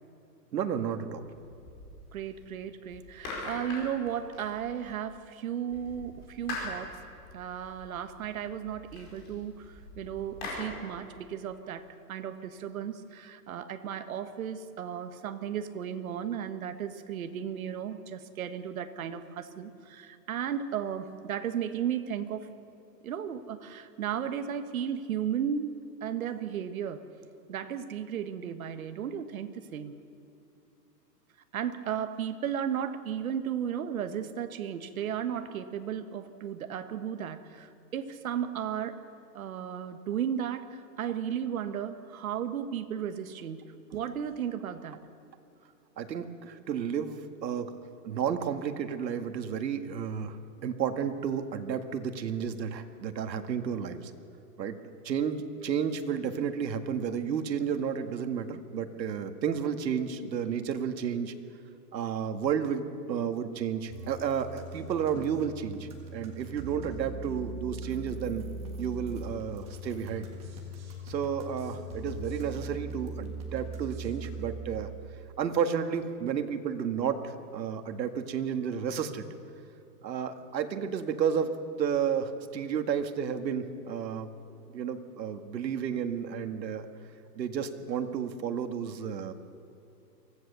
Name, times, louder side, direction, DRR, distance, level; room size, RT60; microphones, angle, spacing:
voice 1, 0.5-1.3 46.0-47.7 48.0-50.4 50.6-54.1 54.6-54.8 55.0-61.3 61.9-68.4 68.8-70.3 71.1-74.9 75.4-79.3 80.0-84.3 84.7-86.9 87.4-89.3, right 7 dB, 85° right, 8 dB, 1.9 m, -32 dB
sound 1, 1.2-2.4 2.9-5.1 5.7-10.6, left 2 dB, 20° left, 4.9 m, -43 dB
voice 2, 2.1-6.9 7.3-22.5 23.0-25.7 26.0-27.0 27.5-29.9 31.5-39.0 39.3-43.6 43.9-45.0, right 9 dB, 55° right, 9 dB, 1.4 m, -35 dB
sound 2, 63.9-74.6, right 2 dB, 10° right, 1.5 m, -40 dB
24.0 x 16.5 x 6.8 m, 2.7 s
hypercardioid pair, 180°, 50 cm